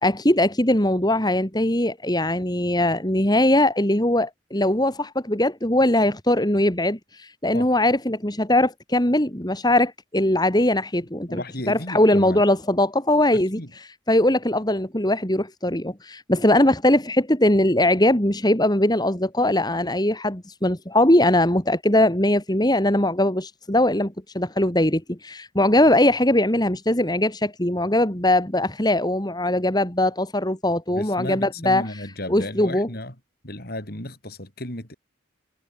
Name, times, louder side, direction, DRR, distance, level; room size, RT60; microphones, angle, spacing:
voice 1, 0.0-31.9 32.3-32.9, left 1 dB, 20° left, 2.9 m, -21 dB
voice 2, 11.3-12.4 13.5-13.7 30.9-33.1 33.4-34.9, left 1 dB, 50° left, 7.0 m, -34 dB
head